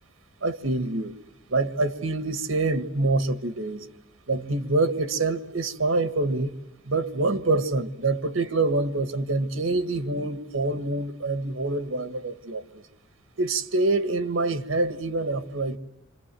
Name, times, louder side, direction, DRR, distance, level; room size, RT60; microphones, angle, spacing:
voice 1, 0.4-1.1 1.5-3.8 4.3-6.5 6.9-12.6 13.4-15.8, right 2 dB, 90° right, 1.6 m, -26 dB
28.0 x 27.0 x 7.7 m
head